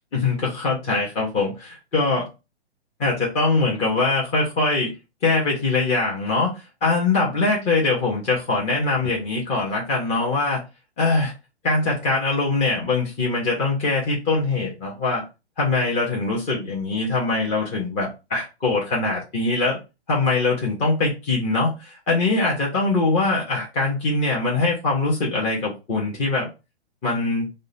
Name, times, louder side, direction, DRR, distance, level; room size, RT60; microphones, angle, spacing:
voice 1, 0.1-2.3 3.0-4.9 5.2-10.6 11.0-11.3 11.6-15.2 15.6-19.8 20.1-26.5 27.0-27.5, left 3 dB, 20° left, -3 dB, 0.7 m, -22 dB
2.8 x 2.1 x 3.9 m, 0.28 s
figure-of-eight pair, 120°, 33 cm